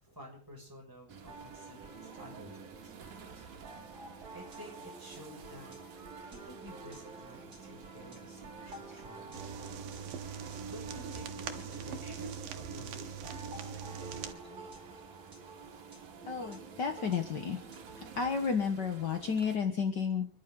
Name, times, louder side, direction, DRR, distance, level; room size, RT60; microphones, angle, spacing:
voice 1, 0.0-2.9 4.3-5.7 6.2-9.4 10.7-11.3 11.6-14.7, equal, 5° right, 0 dB, 5.9 m, -52 dB
sound 1, 1.1-19.6, right 6 dB, 65° right, 3.5 m, -52 dB
sound 2, 1.2-18.2, right 3 dB, 35° right, 3.4 m, -50 dB
sound 3, 9.3-14.3, right 7 dB, 80° right, 3.0 m, -42 dB
voice 2, 16.3-17.6 18.2-20.3, left 6 dB, 55° left, 6 dB, 1.1 m, -32 dB
29.0 x 11.5 x 3.8 m, 0.42 s
omnidirectional pair, 3.9 m